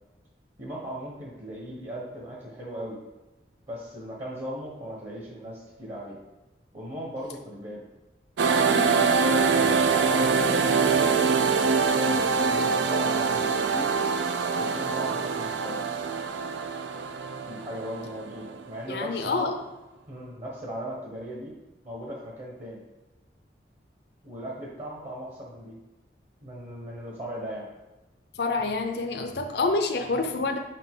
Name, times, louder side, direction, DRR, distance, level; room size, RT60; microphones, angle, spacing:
voice 1, 0.6-3.0 3.7-6.2 6.7-7.8 9.1-11.0 11.8-14.0 14.6-16.0 17.4-19.5 20.1-21.5 21.8-22.8 24.2-25.8 26.4-27.7, equal, 40° right, -3 dB, 1.3 m, -38 dB
sound 1, 8.4-18.7, right 5 dB, 80° right, 0.4 m, -24 dB
voice 2, 8.7-9.1 18.9-19.5 28.4-30.6, left 3 dB, 65° left, 4 dB, 0.6 m, -27 dB
5.8 x 5.4 x 3.7 m, 1.1 s
head